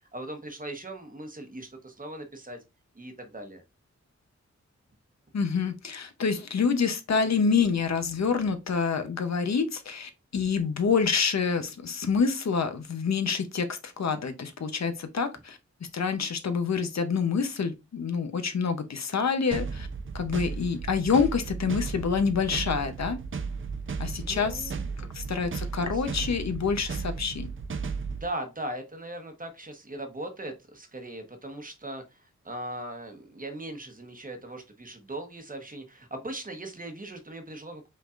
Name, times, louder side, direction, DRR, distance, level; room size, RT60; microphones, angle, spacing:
voice 1, 0.1-2.6 2.9-3.6 24.2-25.3 25.9-26.3 28.1-37.9, right 1 dB, 30° right, 1.0 m, -39 dB
voice 2, 5.3-15.6 15.9-19.9 20.1-23.2 24.0-24.7 25.1-27.5, left 5 dB, 65° left, 0.7 m, -27 dB
sound 1, 19.5-28.3, right 5 dB, 45° right, 0.5 m, -35 dB
5.6 x 3.7 x 2.4 m
wide cardioid pair, 115°, 29 cm